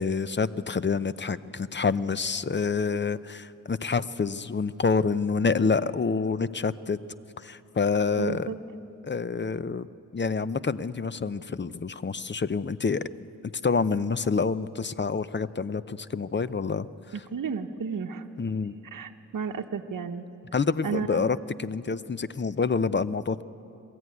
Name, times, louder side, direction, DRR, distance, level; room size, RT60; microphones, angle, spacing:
voice 1, 0.0-7.0 7.4-8.5 9.0-9.9 10.1-13.1 13.6-16.9 18.4-18.7 20.5-23.4, left 5 dB, 35° left, 15 dB, 0.6 m, -27 dB
voice 2, 8.2-8.6 17.3-18.3 18.9-20.3 20.8-21.3, right 6 dB, 75° right, 5 dB, 0.9 m, -32 dB
22.0 x 14.5 x 9.5 m, 2.8 s
cardioid pair, 55°, 32 cm